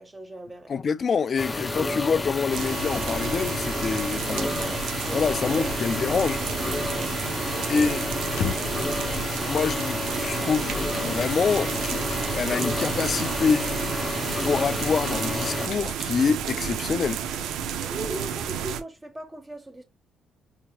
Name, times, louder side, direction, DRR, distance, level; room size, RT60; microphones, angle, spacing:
voice 1, 0.0-0.7 4.4-4.8 5.1-6.7 7.5-7.7 17.9-19.8, right 2 dB, 20° right, 1.4 m, -39 dB
voice 2, 0.7-4.5 5.1-6.4 7.7-8.1 9.5-10.8 11.0-12.0 12.3-13.7 14.5-17.2, left 5 dB, 45° left, 0.4 m, -26 dB
sound 1, 1.4-15.7, left 2 dB, 20° left, 0.7 m, -30 dB
sound 2, 2.5-18.8, right 8 dB, 85° right, 0.6 m, -32 dB
sound 3, 8.2-8.8 9.5-9.8 10.2-10.3 11.1-12.2 12.8-13.1 13.4-13.8 14.2-14.5 14.8-14.9 15.4-16.2, left 6 dB, 80° left, 0.8 m, -36 dB
4.8 x 2.9 x 2.3 m
cardioid pair, 90°, 0 cm